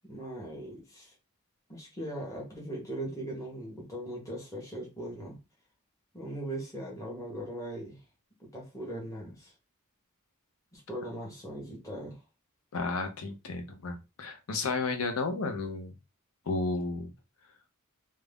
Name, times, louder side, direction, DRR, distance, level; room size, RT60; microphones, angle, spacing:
voice 1, 0.0-1.1 1.7-5.4 6.1-8.0 8.4-9.5 10.7-12.2, right 1 dB, 15° left, 0.8 m, -39 dB
voice 2, 12.7-15.9 16.5-17.1, left 3 dB, 70° left, 0.6 m, -32 dB
2.5 x 2.1 x 3.3 m
head